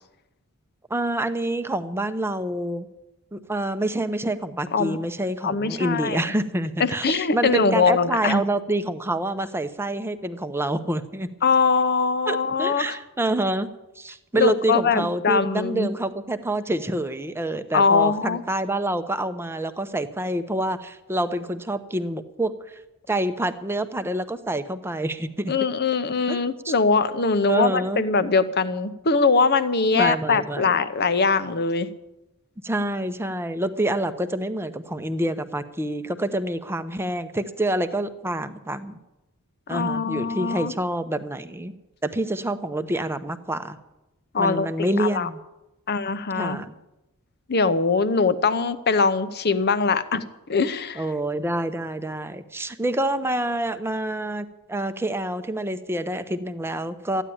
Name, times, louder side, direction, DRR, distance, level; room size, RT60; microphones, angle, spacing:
voice 1, 0.9-2.9 3.3-11.3 12.3-13.7 14.0-22.8 23.1-25.5 26.3-26.7 27.4-28.0 29.9-30.7 32.6-38.9 39.7-41.7 42.0-43.8 44.4-45.4 46.4-46.8 51.0-57.2, right 1 dB, 10° right, 10 dB, 0.7 m, -27 dB
voice 2, 5.4-6.2 6.8-8.4 11.4-12.9 14.3-15.9 17.7-18.4 25.5-31.9 39.7-40.7 44.3-45.3 45.9-46.6 47.5-51.0, left 4 dB, 45° left, 13 dB, 0.8 m, -22 dB
14.0 x 10.0 x 8.6 m, 0.98 s
head